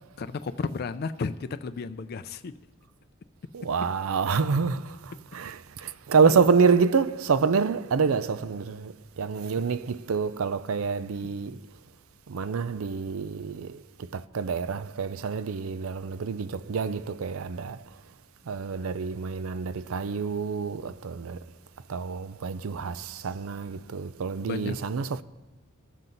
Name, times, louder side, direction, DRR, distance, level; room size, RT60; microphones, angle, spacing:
voice 1, 0.2-2.5 5.8-5.9 6.2-6.5 9.6-9.7 24.5-24.8, left 4 dB, 50° left, 0.4 m, -33 dB
voice 2, 3.5-11.6 12.3-13.8 14.1-17.8 18.5-21.4 21.9-25.2, right 5 dB, 85° right, 0.5 m, -27 dB
21.5 x 7.5 x 4.0 m
head